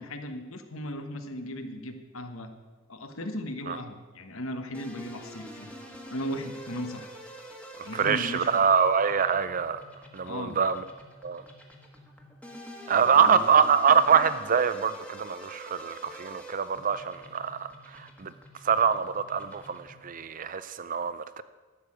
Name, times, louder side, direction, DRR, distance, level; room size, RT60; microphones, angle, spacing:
voice 1, 0.0-2.5 2.9-5.7 6.1-7.1 7.8-8.6 10.2-10.6 13.0-13.4, left 1 dB, 65° left, 6 dB, 1.3 m, -37 dB
sound 1, 4.7-20.1, equal, 5° left, 1.4 m, -47 dB
voice 2, 7.9-9.8 10.1-10.8 11.2-11.4 12.9-18.3 18.6-21.4, right 6 dB, 35° right, 13 dB, 0.4 m, -24 dB
12.5 x 6.7 x 8.8 m, 1.3 s
head